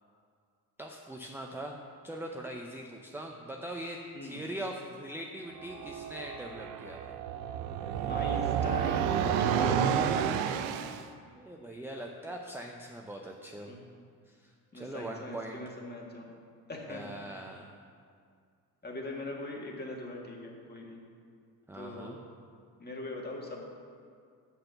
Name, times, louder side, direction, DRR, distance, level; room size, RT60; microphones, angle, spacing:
voice 1, 0.8-1.8 2.0-7.2 11.3-13.7 14.3-15.6 16.9-17.8 21.7-22.2, right 1 dB, 5° right, 0 dB, 0.6 m, -41 dB
sound 1, 5.6-11.0, right 8 dB, 85° right, 0.6 m, -30 dB
voice 2, 8.1-10.4 13.7-13.8 14.7-16.3 16.7-17.2 18.8-21.0 21.7-22.2 22.8-23.6, left 2 dB, 25° left, -1 dB, 1.8 m, -41 dB
6.6 x 5.9 x 6.6 m, 2.2 s
supercardioid pair, 70°, 39 cm